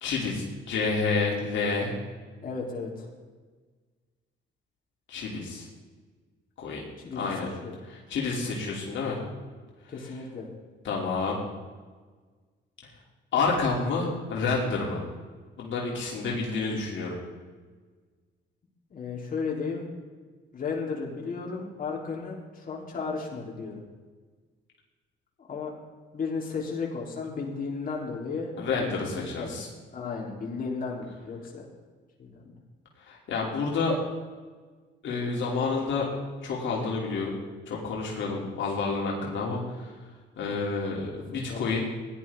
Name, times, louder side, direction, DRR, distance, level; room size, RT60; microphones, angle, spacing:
voice 1, 0.0-2.0 5.1-5.7 6.6-6.8 7.2-7.5 7.9-9.2 10.8-11.4 13.3-15.0 15.6-17.2 28.6-29.7 33.0-34.0 35.0-36.1 36.4-37.4 37.7-39.9 40.4-41.9, left 4 dB, 70° left, -3 dB, 3.0 m, -29 dB
voice 2, 2.4-3.1 7.0-7.3 7.6-7.8 9.9-10.5 18.9-19.9 20.5-23.8 25.5-25.7 26.1-29.6 29.9-31.7 32.2-32.4 38.4-38.5 40.4-40.6 41.3-41.7, left 4 dB, 45° left, -2 dB, 3.4 m, -34 dB
16.5 x 11.0 x 3.7 m, 1.4 s
cardioid pair, 90°, 20 cm